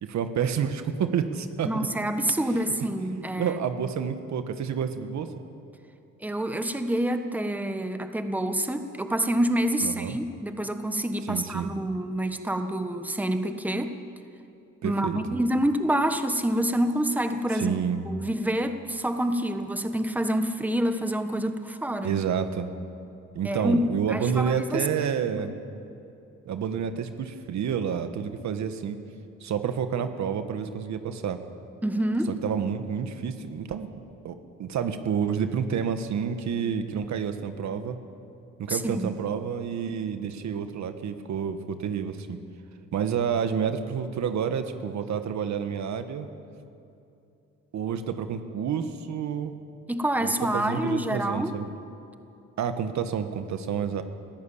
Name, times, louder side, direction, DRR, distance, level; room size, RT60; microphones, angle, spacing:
voice 1, 0.0-1.9 3.3-5.3 9.8-10.2 11.2-11.7 14.8-15.2 17.5-18.0 22.0-22.7 23.3-25.5 26.5-29.0 29.4-31.4 32.3-33.9 34.2-38.0 38.6-42.4 42.9-46.3 47.7-49.5 50.2-51.7 52.6-54.0, right 7 dB, 65° right, 9 dB, 1.4 m, -29 dB
voice 2, 1.6-3.6 6.2-13.9 14.8-17.8 18.1-22.1 23.4-24.8 31.8-32.3 38.7-39.1 49.9-51.5, right 1 dB, 5° right, 7 dB, 1.3 m, -27 dB
21.0 x 14.5 x 8.6 m, 2.7 s
cardioid pair, 90°, 30 cm